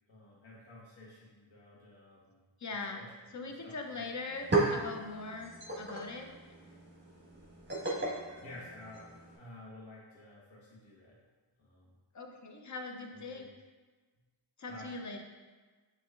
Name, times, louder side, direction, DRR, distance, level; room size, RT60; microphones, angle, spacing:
voice 1, 0.1-2.4 2.7-3.1 3.6-4.0 8.4-11.2 11.6-11.9 13.1-13.5 14.7-14.9, left 2 dB, 80° left, -5 dB, 1.4 m, -52 dB
voice 2, 2.6-3.0 3.3-6.3 12.1-13.5 14.6-15.2, left 3 dB, 40° left, 3 dB, 0.5 m, -41 dB
sound 1, 3.8-3.9 4.2-9.4, right 2 dB, 25° right, 1.3 m, -35 dB
6.7 x 3.0 x 2.3 m, 1.4 s
wide cardioid pair, 85°, 46 cm